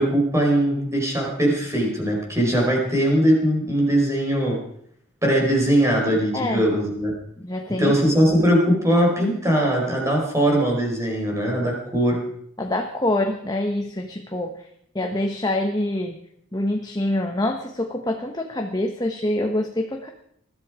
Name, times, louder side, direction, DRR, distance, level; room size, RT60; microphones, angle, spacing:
voice 1, 0.0-4.6 5.2-7.1 7.8-12.2, equal, 15° right, -1 dB, 5.0 m, -20 dB
voice 2, 6.3-6.7 7.4-7.9 12.6-14.7 14.9-16.2 16.5-20.1, left 1 dB, 20° left, 3 dB, 1.1 m, -25 dB
20.5 x 13.5 x 5.0 m, 0.68 s
head